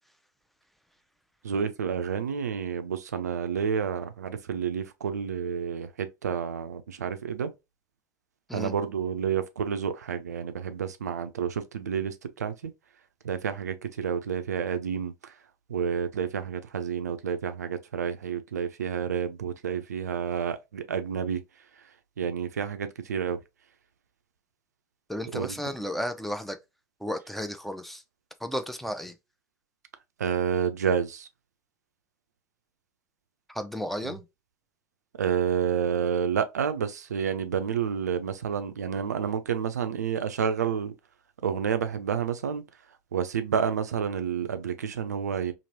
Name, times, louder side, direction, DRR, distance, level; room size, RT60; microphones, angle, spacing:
voice 1, 1.4-7.5 8.5-12.7 13.2-15.4 15.7-21.4 22.2-23.4 25.3-25.6 30.2-31.3 34.0-34.1 35.2-40.9 41.4-42.6 43.1-45.5, right 7 dB, 80° right, 0.4 m, -29 dB
voice 2, 25.1-26.6 27.0-28.0 28.4-29.2 33.5-34.3, equal, ahead, 0.5 m, -33 dB
2.9 x 2.6 x 2.6 m
figure-of-eight pair, 70°, 9 cm